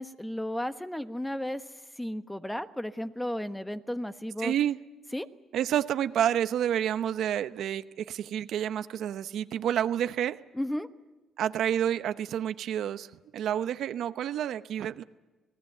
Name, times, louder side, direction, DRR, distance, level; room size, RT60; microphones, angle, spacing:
voice 1, 0.0-1.6 2.0-4.5 5.1-5.3 10.5-10.9, left 1 dB, 5° left, 10 dB, 1.1 m, -33 dB
voice 2, 4.4-4.8 5.5-10.4 11.4-13.1 13.3-15.0, right 10 dB, 75° right, 11 dB, 0.9 m, -29 dB
27.5 x 19.0 x 8.0 m, 1.2 s
cardioid pair, 90°, 0 cm